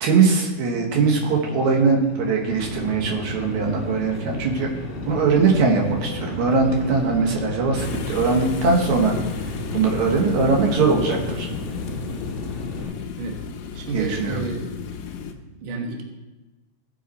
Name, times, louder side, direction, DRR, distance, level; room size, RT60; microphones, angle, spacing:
voice 1, 0.0-4.7 5.1-9.2 9.4-11.5 13.9-14.4, right 4 dB, 65° right, 1 dB, 2.1 m, -21 dB
sound 1, 1.1-12.8, left 2 dB, 90° left, 2.6 m, -39 dB
sound 2, 2.5-12.9, left 2 dB, ahead, 0.6 m, -34 dB
sound 3, 7.8-15.3, left 7 dB, 75° left, 2.1 m, -34 dB
voice 2, 13.7-14.7 15.6-16.0, right 3 dB, 80° right, 1 dB, 1.1 m, -30 dB
15.5 x 6.0 x 4.1 m, 1.1 s
omnidirectional pair, 4.4 m